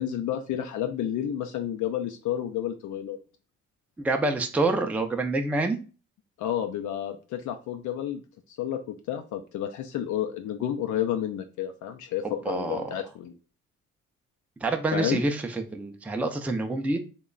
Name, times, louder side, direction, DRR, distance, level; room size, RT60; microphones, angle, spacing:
voice 1, 0.0-3.2 6.4-8.2 8.5-13.3 14.9-15.2, left 10 dB, 75° left, 5 dB, 0.5 m, -30 dB
voice 2, 4.0-5.8 12.5-12.9 14.6-17.0, right 2 dB, 5° right, 5 dB, 0.4 m, -27 dB
3.0 x 2.2 x 3.7 m, 0.35 s
cardioid pair, 90°, 30 cm